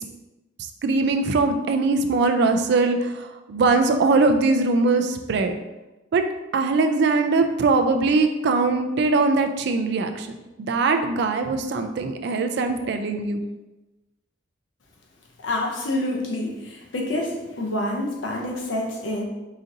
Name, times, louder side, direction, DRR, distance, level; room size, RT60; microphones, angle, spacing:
voice 1, 0.8-5.6 6.1-6.2 6.5-10.3 10.6-13.4, right 3 dB, 60° right, 6 dB, 0.4 m, -21 dB
voice 2, 15.4-19.2, left 1 dB, 85° left, 0 dB, 0.7 m, -27 dB
5.0 x 2.7 x 2.5 m, 1.1 s
head